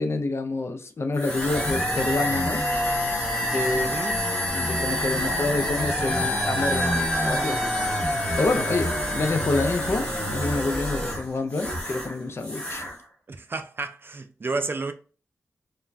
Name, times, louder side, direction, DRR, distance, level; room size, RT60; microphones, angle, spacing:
voice 1, 0.0-2.6 3.4-3.9 4.5-7.7 8.4-12.9, left 3 dB, 50° left, 0.4 m, -27 dB
sound 1, 1.1-12.1 12.4-12.9, equal, 20° left, 1.0 m, -27 dB
voice 2, 3.7-4.2 13.3-14.9, right 3 dB, 40° right, 0.3 m, -31 dB
2.4 x 2.2 x 3.2 m
wide cardioid pair, 70°, 5 cm